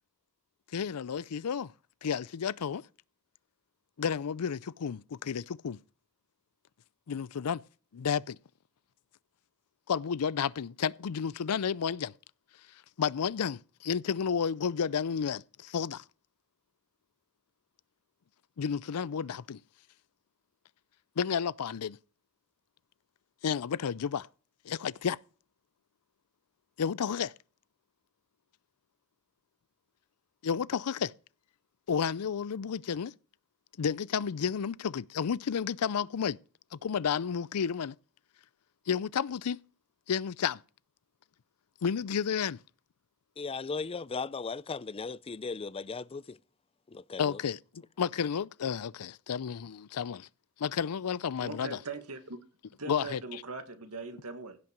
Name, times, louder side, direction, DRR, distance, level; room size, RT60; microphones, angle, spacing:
voice 1, 0.7-1.7 2.0-2.8 4.0-5.8 7.1-7.6 7.9-8.4 9.9-12.1 13.0-16.0 18.6-19.6 21.2-22.0 23.4-24.3 24.7-25.2 26.8-27.3 30.4-31.1 31.9-33.1 33.8-36.4 36.7-38.0 38.9-39.6 40.1-40.6 41.8-42.6 47.2-50.3 50.6-51.8 52.9-53.2, left 7 dB, 85° left, 0.5 m, -31 dB
voice 2, 43.4-46.4 46.9-47.4, left 4 dB, 25° left, 0.4 m, -37 dB
voice 3, 51.4-52.4 52.8-54.6, right 3 dB, 75° right, 1.9 m, -41 dB
16.5 x 5.7 x 5.2 m
head